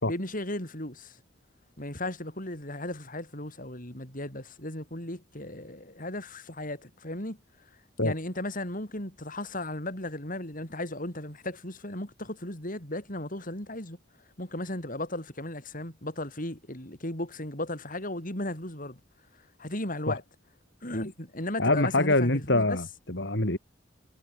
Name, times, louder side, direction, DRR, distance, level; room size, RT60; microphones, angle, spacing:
voice 1, 0.1-1.2 1.8-7.4 8.0-14.0 14.4-19.0 19.6-20.2 20.8-22.8, left 1 dB, 45° left, 7.4 m, -35 dB
voice 2, 21.6-23.6, left 2 dB, 60° left, 4.4 m, -25 dB
head